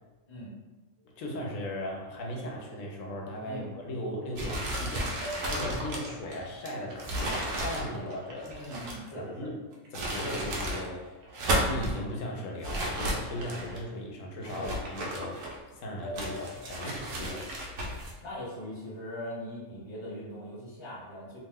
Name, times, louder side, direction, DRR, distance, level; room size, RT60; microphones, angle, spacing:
sound 1, 1.0-1.5 2.4-3.7 5.2-6.3 7.9-9.0 10.7-11.8 13.3-14.2 16.0-17.1, left 1 dB, 45° right, 0.5 m, -46 dB
voice 1, 1.2-8.5 9.2-9.6 9.9-11.2 11.6-17.5, left 1 dB, 85° left, -1 dB, 1.0 m, -37 dB
sound 2, 4.3-9.1 9.7-10.9 11.2-12.0 12.6-13.8 14.4-15.7 16.2-18.1, right 1 dB, 85° right, 1.0 m, -33 dB
voice 2, 8.5-9.5 14.6-14.7 18.2-21.4, left 1 dB, 25° left, -7 dB, 0.8 m, -40 dB
2.7 x 2.1 x 3.5 m, 1.2 s
omnidirectional pair, 1.3 m